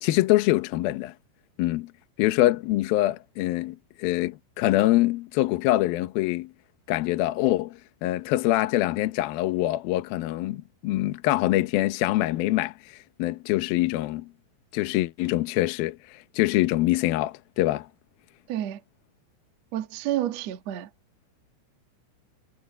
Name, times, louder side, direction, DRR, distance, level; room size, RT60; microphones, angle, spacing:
voice 1, 0.0-1.1 1.6-1.9 2.2-6.5 6.9-14.3 14.7-17.9, left 16 dB, 80° left, 2.1 m, -24 dB
voice 2, 18.5-18.8 19.7-20.9, right 12 dB, 85° right, 1.5 m, -29 dB
omnidirectional pair, 5.9 m